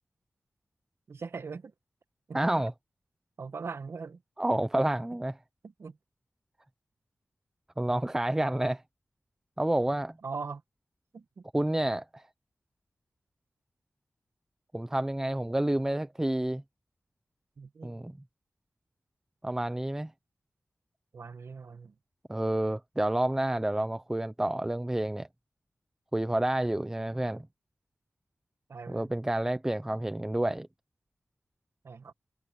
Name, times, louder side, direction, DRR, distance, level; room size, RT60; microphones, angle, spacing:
voice 1, 1.1-1.7 2.3-2.4 3.4-4.2 4.8-4.9 5.6-6.0 10.2-10.6 11.1-11.4 17.6-18.1 21.1-22.0 28.7-29.1 31.8-32.1, right 5 dB, 70° right, 1.2 m, -41 dB
voice 2, 2.3-2.7 4.4-5.3 7.8-8.8 9.6-10.2 11.5-12.2 14.7-16.6 17.8-18.1 19.4-20.1 22.3-25.3 26.1-27.5 28.9-30.7, right 1 dB, 10° right, 0.5 m, -29 dB
wide cardioid pair, 110°, 5 cm